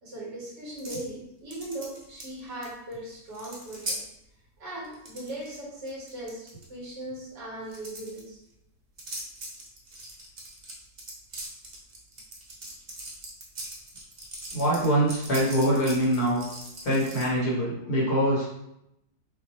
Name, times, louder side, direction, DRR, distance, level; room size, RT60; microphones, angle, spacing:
voice 1, 0.0-4.0 4.6-8.4, right 1 dB, 65° right, -7 dB, 2.4 m, -39 dB
sound 1, 0.8-1.1 1.5-2.6 2.9-3.0 3.3-4.0 4.8-5.6 5.9-6.6 7.6-8.2 9.0-17.3, right 1 dB, 45° right, 0.5 m, -40 dB
voice 2, 14.5-16.4 16.8-18.5, equal, 55° left, -6 dB, 1.8 m, -24 dB
5.5 x 2.3 x 3.2 m, 0.81 s
omnidirectional pair, 2.0 m